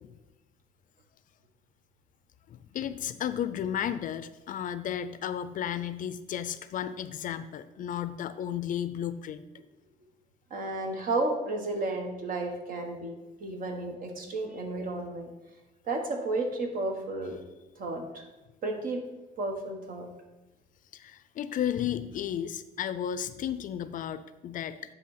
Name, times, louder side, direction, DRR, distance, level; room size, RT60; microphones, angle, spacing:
voice 1, 2.5-9.4 20.9-24.8, left 9 dB, 50° left, 13 dB, 0.5 m, -33 dB
voice 2, 10.5-15.3 15.9-17.4 17.8-18.2 18.6-19.0 19.4-20.1, right 2 dB, 55° right, 3 dB, 1.5 m, -32 dB
9.8 x 3.3 x 5.8 m, 1.1 s
cardioid pair, 110°, 17 cm